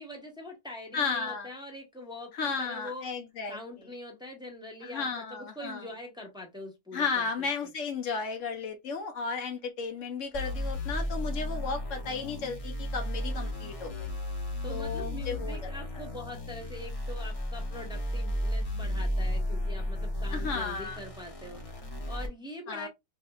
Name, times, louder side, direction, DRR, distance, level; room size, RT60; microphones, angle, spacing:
voice 1, 0.0-3.1 3.5-7.7 14.6-22.9, left 1 dB, 5° right, 0.9 m, -43 dB
voice 2, 0.9-1.5 2.3-3.9 4.8-5.9 6.9-14.1 14.7-16.0 20.3-21.0 22.7-22.9, left 5 dB, 80° left, 1.2 m, -34 dB
sound 1, 10.3-22.3, left 1 dB, 30° left, 0.9 m, -34 dB
3.5 x 2.9 x 2.3 m
omnidirectional pair, 1.3 m